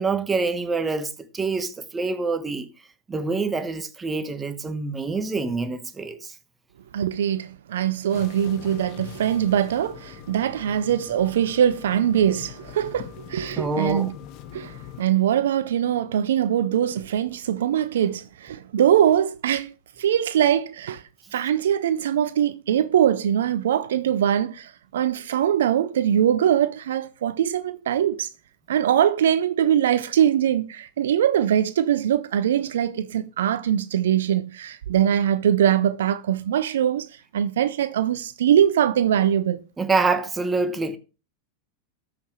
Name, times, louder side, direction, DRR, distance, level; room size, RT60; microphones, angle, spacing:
voice 1, 0.0-2.7 3.1-6.3 13.6-14.1 39.8-41.0, right 3 dB, 15° right, 1.1 m, -26 dB
voice 2, 6.9-14.1 14.5-21.0 21.3-28.3 28.7-37.1 37.3-39.6, right 10 dB, 75° right, 0.4 m, -22 dB
sound 1, 8.1-15.0, left 13 dB, 50° left, 0.8 m, -42 dB
13.0 x 5.7 x 3.1 m
hypercardioid pair, 95°, 0 cm